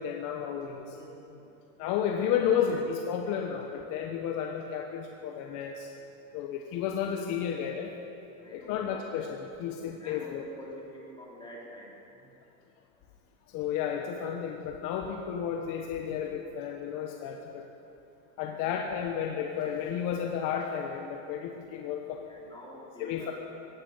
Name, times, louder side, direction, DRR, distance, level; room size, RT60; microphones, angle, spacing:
voice 1, 0.0-1.0 1.8-5.9 6.3-7.9 8.5-10.4 13.5-17.6 18.4-22.2 23.0-23.3, left 8 dB, 50° left, 2 dB, 1.2 m, -32 dB
voice 2, 0.9-1.5 2.2-2.5 8.4-9.0 10.0-12.3 18.4-18.7 22.3-23.3, left 1 dB, 10° left, -4 dB, 3.7 m, -48 dB
17.0 x 10.5 x 7.9 m, 2.9 s
supercardioid pair, 135°, 39 cm